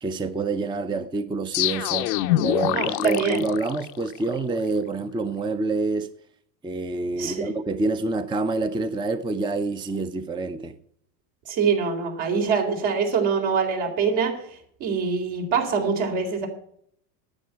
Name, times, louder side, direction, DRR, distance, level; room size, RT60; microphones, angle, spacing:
voice 1, 0.0-2.1 2.4-6.1 6.6-10.8, right 3 dB, 10° right, 0.6 m, -27 dB
sound 1, 1.5-4.3, left 15 dB, 80° left, 0.8 m, -25 dB
voice 2, 2.7-3.4 7.2-7.5 11.5-14.3 14.8-16.5, right 5 dB, 65° right, 3.9 m, -24 dB
9.9 x 8.4 x 8.8 m
supercardioid pair, 95°, 49 cm